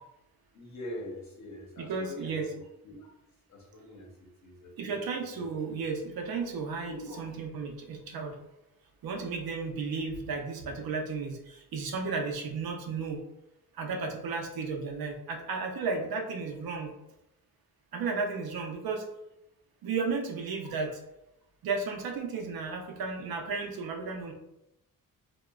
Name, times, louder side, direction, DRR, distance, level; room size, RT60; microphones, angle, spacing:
voice 1, 0.5-3.1 3.5-5.1 5.3-5.7 6.8-7.3, left 1 dB, 50° left, -2 dB, 0.8 m, -44 dB
voice 2, 1.8-2.4 4.8-8.4 9.0-13.2 13.7-16.9 17.9-19.1 19.8-20.9 21.6-24.3, right 4 dB, 85° right, 2 dB, 0.6 m, -34 dB
2.8 x 2.1 x 2.3 m, 0.87 s
wide cardioid pair, 170°, 35 cm